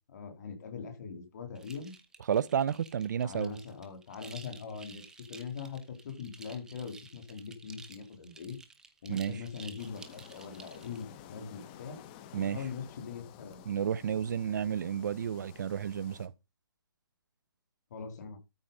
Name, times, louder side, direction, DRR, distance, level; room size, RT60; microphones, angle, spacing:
voice 1, 0.1-1.9 3.2-5.0 5.3-8.6 9.0-12.0 12.3-13.6 17.9-18.4, left 6 dB, 40° left, 3.3 m, -42 dB
sound 1, 1.5-11.0, right 4 dB, 5° right, 0.8 m, -53 dB
voice 2, 2.3-3.5 9.1-9.4 12.3-12.6 13.7-16.3, right 8 dB, 45° right, 0.6 m, -31 dB
sound 2, 9.8-16.3, left 10 dB, 20° left, 0.9 m, -52 dB
13.0 x 4.8 x 5.3 m
hypercardioid pair, 160°, 13 cm